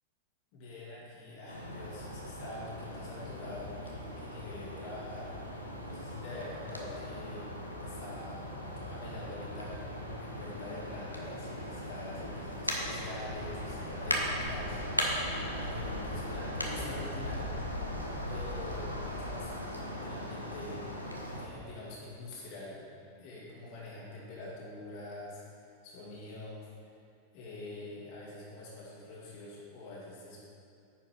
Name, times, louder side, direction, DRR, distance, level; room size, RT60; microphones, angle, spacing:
voice 1, 0.5-5.3 5.6-7.5 7.8-8.5 8.8-17.5 18.3-20.8 21.4-22.9 23.2-26.7 27.3-30.4, left 2 dB, 45° left, -6 dB, 2.1 m, -45 dB
sound 1, 1.5-21.5, equal, 90° left, 0.9 m, -38 dB
9.5 x 5.0 x 4.8 m, 2.5 s
figure-of-eight pair, 90°, 0 cm